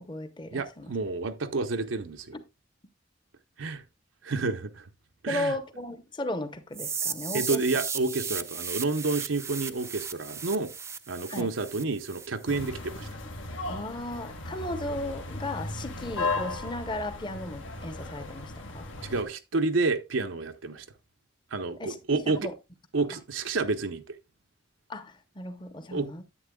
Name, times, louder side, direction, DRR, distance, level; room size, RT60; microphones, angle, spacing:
voice 1, 0.0-0.9 2.3-2.4 5.3-7.7 11.3-11.5 13.7-18.9 21.8-22.5 23.0-23.1 24.9-26.2, left 1 dB, 25° left, 0.8 m, -36 dB
voice 2, 0.5-2.4 3.6-3.8 4.2-4.9 5.2-5.6 7.3-10.7 11.1-13.1 19.0-20.9 21.5-22.5 22.9-24.0 25.9-26.1, right 3 dB, 90° right, 0.8 m, -29 dB
sound 1, 6.7-12.7, right 6 dB, 15° right, 0.4 m, -35 dB
sound 2, 12.5-19.2, left 2 dB, 85° left, 1.7 m, -36 dB
9.9 x 8.4 x 2.2 m
head